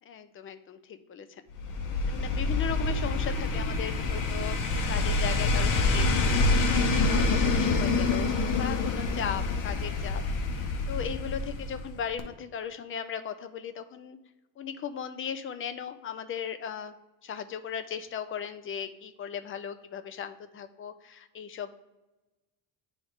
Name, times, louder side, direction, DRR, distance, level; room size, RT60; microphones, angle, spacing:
voice 1, 0.1-1.4 2.1-6.5 7.1-8.3 8.6-10.2 10.9-14.2 14.6-16.9 17.2-21.7, left 7 dB, 35° left, 10 dB, 0.5 m, -37 dB
sound 1, 1.6-11.9 12.2-12.3, left 3 dB, 55° left, 1.0 m, -27 dB
9.5 x 3.5 x 3.5 m, 1.0 s
cardioid pair, 110°, 37 cm